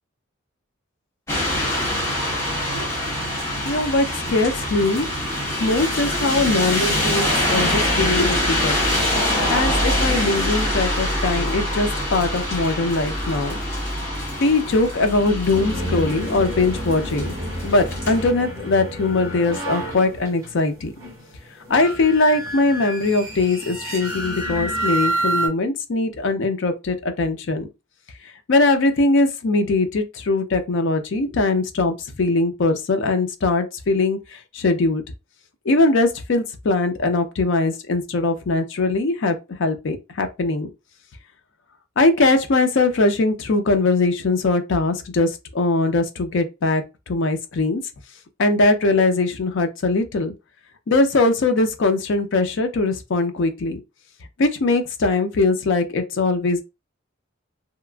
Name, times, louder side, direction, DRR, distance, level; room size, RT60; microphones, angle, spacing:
sound 1, 1.3-18.3, left 1 dB, 15° left, 1.1 m, -24 dB
voice 1, 3.6-5.1 5.6-8.9 9.5-13.6 14.4-17.3 17.6-20.9 21.7-27.7 28.5-35.0 35.7-40.7 42.0-47.8 48.4-50.3 50.9-53.8 54.4-56.6, left 2 dB, 65° left, 0.5 m, -21 dB
sound 2, 15.5-25.5, right 1 dB, 15° right, 1.1 m, -29 dB
2.8 x 2.4 x 2.3 m
head